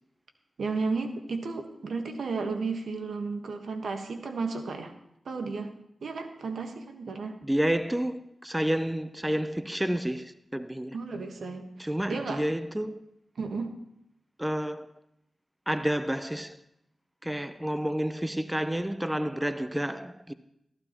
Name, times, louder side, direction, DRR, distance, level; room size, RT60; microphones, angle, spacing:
voice 1, 0.6-4.9 5.2-5.7 6.0-7.4 10.9-12.4 13.4-13.7, right 4 dB, 80° right, 1.3 m, -33 dB
voice 2, 7.4-11.0 11.8-13.0 14.4-14.9 15.7-16.6 17.2-20.3, right 1 dB, 10° right, 0.7 m, -30 dB
14.0 x 12.0 x 3.0 m
cardioid pair, 40°, 0 cm